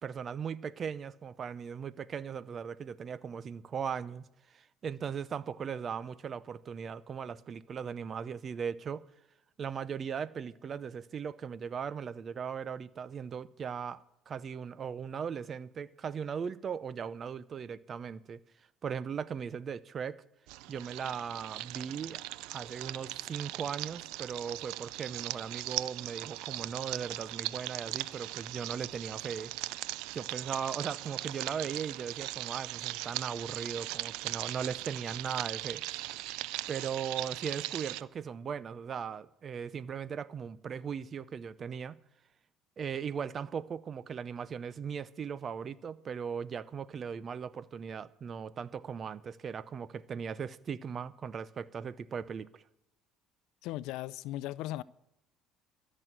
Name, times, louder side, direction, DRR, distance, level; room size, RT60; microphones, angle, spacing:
voice 1, 0.0-9.0 9.6-18.4 18.8-20.2 20.7-29.5 30.1-36.1 36.7-42.0 42.8-52.6, right 7 dB, 40° right, 0.7 m, -38 dB
sound 1, 20.5-38.0, right 18 dB, 80° right, 0.4 m, -39 dB
voice 2, 53.6-54.8, left 15 dB, 80° left, 0.4 m, -37 dB
13.5 x 6.3 x 8.9 m
supercardioid pair, 90°, 0 cm